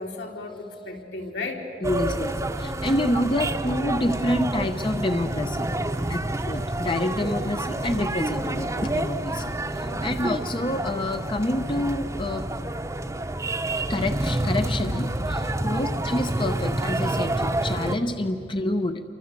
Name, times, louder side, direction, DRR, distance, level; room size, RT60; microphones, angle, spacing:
voice 1, 0.0-1.7 5.9-6.2 9.9-10.2 15.6-15.8, left 3 dB, 75° left, 1 dB, 3.8 m, -35 dB
voice 2, 1.8-2.3 2.6-5.7 6.1-12.5 13.1-13.2 13.9-19.0, left 1 dB, 30° left, 7 dB, 0.8 m, -27 dB
sound 1, 1.8-18.0, right 1 dB, 20° right, 1.0 m, -28 dB
29.0 x 24.0 x 8.3 m, 2.9 s
head